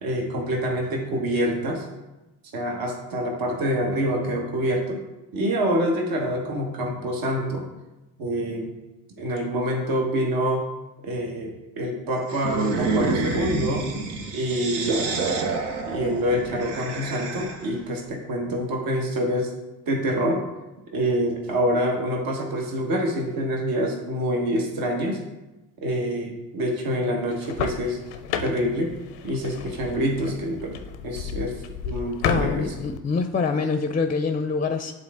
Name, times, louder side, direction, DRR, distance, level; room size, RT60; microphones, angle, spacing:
voice 1, 0.0-1.9 2.5-5.0 5.3-7.6 8.2-8.7 9.2-10.6 11.0-13.9 14.3-15.1 15.9-19.5 19.9-20.4 20.9-25.2 25.8-28.0 28.4-28.9 29.2-31.5 31.8-32.7, equal, 60° right, 1 dB, 1.3 m, -26 dB
sound 1, 12.3-17.8, right 4 dB, 80° right, 0.8 m, -28 dB
sound 2, 27.3-33.0, left 7 dB, 90° left, 0.5 m, -32 dB
voice 2, 32.2-34.9, left 4 dB, 20° left, 7 dB, 0.4 m, -25 dB
8.1 x 3.8 x 3.5 m, 1.0 s
hypercardioid pair, 60°, 39 cm